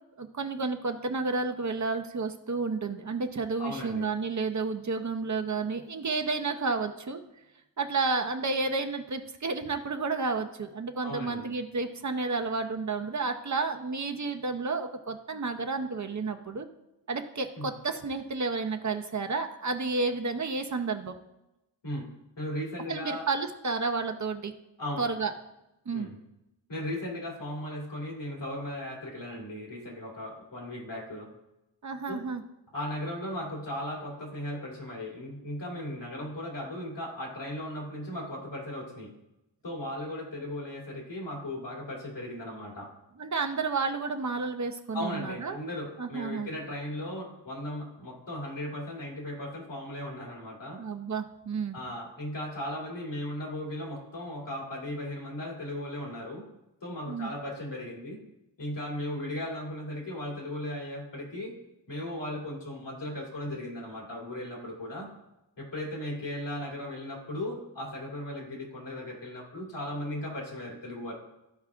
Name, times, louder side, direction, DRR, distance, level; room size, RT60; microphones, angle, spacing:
voice 1, 0.2-7.2 7.8-16.7 17.1-21.1 22.9-24.5 25.0-25.3 25.9-26.1 31.8-32.4 43.2-45.6 46.0-46.5 50.8-51.8 57.1-57.3, right 4 dB, 40° right, 5 dB, 0.7 m, -31 dB
voice 2, 3.6-4.1 11.0-11.5 17.6-17.7 21.8-22.0 22.4-23.2 24.8-25.1 25.9-26.1 26.7-31.3 32.0-32.2 32.7-39.1 39.6-42.9 44.9-50.8 51.7-56.4 56.8-58.2 58.6-61.5 61.9-65.1 65.6-71.1, left 1 dB, 70° left, -3 dB, 2.9 m, -37 dB
14.0 x 4.7 x 2.4 m, 0.92 s
wide cardioid pair, 75°, 45 cm